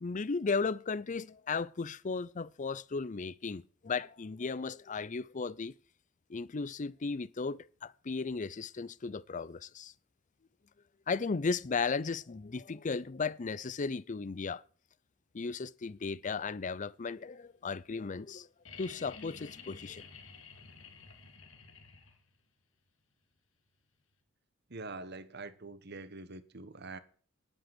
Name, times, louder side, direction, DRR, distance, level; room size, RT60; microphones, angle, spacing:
voice 1, 0.0-5.7 6.3-9.9 11.1-14.6 15.3-18.5 18.8-20.0, left 4 dB, 40° left, 0.5 m, -35 dB
sound 1, 18.6-22.4 24.1-24.2, left 5 dB, 85° left, 2.9 m, -52 dB
voice 2, 24.7-27.0, right 3 dB, 55° right, 1.3 m, -44 dB
10.5 x 10.0 x 6.1 m
head